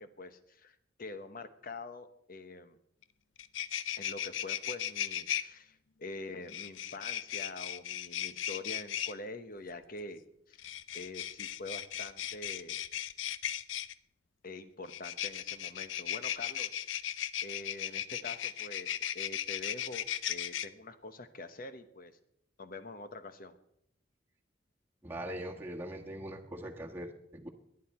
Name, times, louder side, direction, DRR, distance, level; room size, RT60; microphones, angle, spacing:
voice 1, 0.0-2.8 4.0-10.2 10.5-12.8 14.4-17.1 17.4-22.2 22.6-23.6, left 2 dB, 50° left, 10 dB, 1.1 m, -45 dB
sound 1, 3.0-3.1 3.4-5.4 6.5-9.1 10.5-13.9 14.9-20.7, left 11 dB, 90° left, 0.5 m, -36 dB
voice 2, 25.0-27.5, right 1 dB, 10° right, -1 dB, 1.5 m, -41 dB
22.5 x 9.8 x 4.4 m, 0.74 s
head